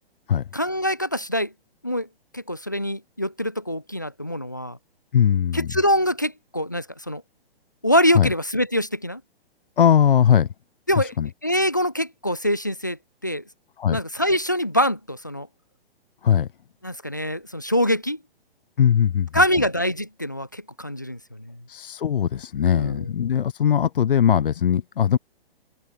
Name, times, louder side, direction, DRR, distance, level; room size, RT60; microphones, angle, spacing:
voice 1, 0.5-1.5 1.8-2.1 2.3-4.8 5.5-7.2 7.8-9.2 10.9-11.1 11.4-13.0 13.2-13.4 13.9-15.5 16.8-18.2 19.3-21.6 22.7-23.0, equal, 20° left, 0.3 m, -24 dB
voice 2, 5.1-5.7 8.1-8.3 9.8-10.5 11.0-11.3 13.8-14.0 16.2-16.5 18.8-19.3 21.7-25.2, left 9 dB, 60° left, 1.3 m, -20 dB
hypercardioid pair, 175°, 31 cm